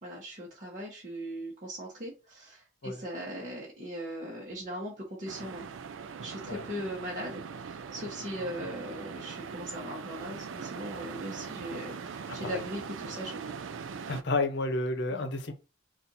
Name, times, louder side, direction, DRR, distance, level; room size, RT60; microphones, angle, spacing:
voice 1, 0.0-5.7 6.2-13.6 15.1-15.3, equal, 40° right, 1.1 m, -39 dB
sound 1, 5.3-14.2, right 6 dB, 80° right, 0.4 m, -41 dB
voice 2, 14.1-15.5, left 2 dB, 65° left, 0.8 m, -31 dB
4.2 x 2.5 x 4.0 m
head